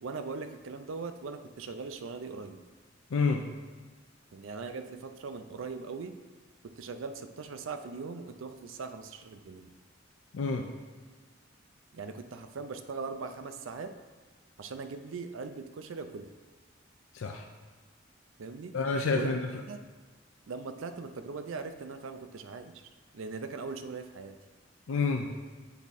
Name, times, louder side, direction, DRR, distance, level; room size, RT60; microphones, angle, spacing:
voice 1, 0.0-2.6 4.3-6.1 6.6-9.7 11.9-13.9 14.6-16.3 18.4-18.7 19.1-19.3 19.7-19.8 20.5-22.9 23.1-24.4, right 4 dB, 80° right, 8 dB, 0.5 m, -40 dB
voice 2, 3.1-3.4 10.3-10.6 17.1-17.4 18.7-19.4 24.9-25.3, left 4 dB, 80° left, 3 dB, 0.5 m, -28 dB
8.1 x 3.5 x 4.1 m, 1.4 s
head